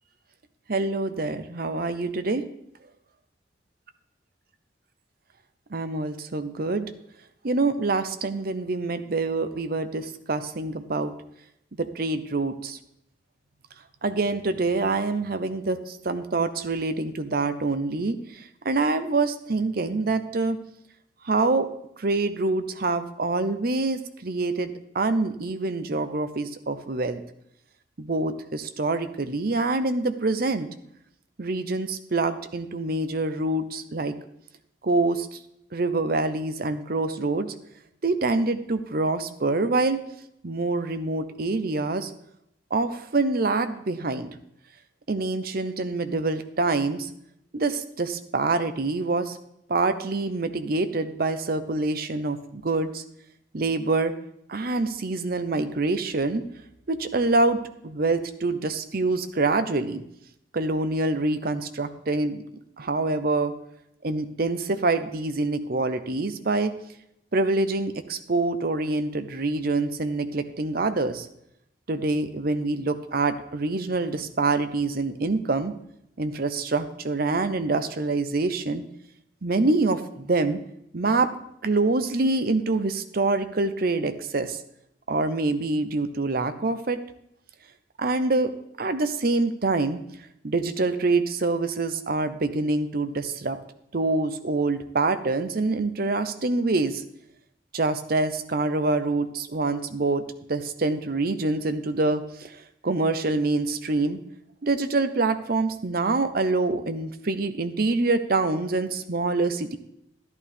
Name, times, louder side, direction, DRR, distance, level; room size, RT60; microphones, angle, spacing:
voice 1, 0.7-2.4 5.7-6.9 7.4-11.1 11.8-12.8 14.0-20.6 21.2-21.7 22.0-27.2 28.0-30.7 31.4-34.1 34.8-35.4 35.7-37.5 38.0-40.0 40.4-42.1 42.7-44.3 45.1-47.1 47.5-49.4 49.7-53.0 53.5-54.1 54.5-56.4 56.9-60.0 60.5-62.4 62.8-63.5 64.0-66.7 67.3-71.3 71.9-75.7 76.2-78.8 79.4-80.6 80.9-81.3 81.6-84.6 85.1-87.0 88.0-88.5 88.8-90.0 90.4-93.6 93.9-97.0 97.7-100.2 100.5-102.6 102.8-104.2 104.6-109.8, right 3 dB, 55° right, 10 dB, 0.8 m, -25 dB
11.0 x 11.0 x 3.5 m, 0.76 s
head